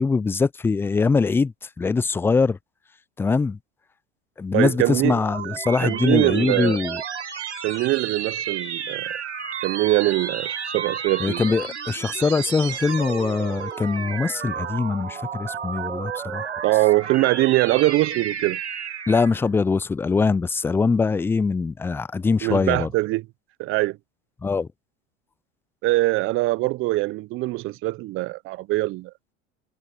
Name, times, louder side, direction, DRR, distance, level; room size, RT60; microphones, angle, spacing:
voice 1, 0.0-2.6 3.2-3.6 4.4-7.0 11.2-16.6 19.1-22.9 24.4-24.7, left 4 dB, 5° left, 0.4 m, -22 dB
voice 2, 4.5-5.1 5.8-6.8 7.6-9.2 9.6-11.4 16.6-18.6 22.4-23.2 23.6-24.0 25.8-29.1, right 19 dB, 40° right, 0.7 m, -22 dB
sound 1, 4.8-19.5, right 7 dB, 90° right, 4.5 m, -32 dB
hypercardioid pair, 95°, 34 cm